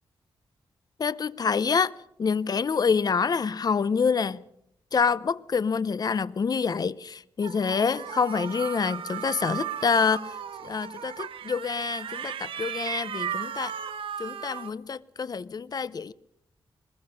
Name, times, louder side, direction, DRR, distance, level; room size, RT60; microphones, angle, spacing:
voice 1, 1.0-1.9 2.2-4.4 4.9-10.3 10.6-13.7 14.2-16.1, left 5 dB, 45° left, 0.7 m, -27 dB
sound 1, 7.4-14.7, right 8 dB, 90° right, 1.0 m, -36 dB
21.5 x 20.0 x 6.4 m
wide cardioid pair, 100°, 9 cm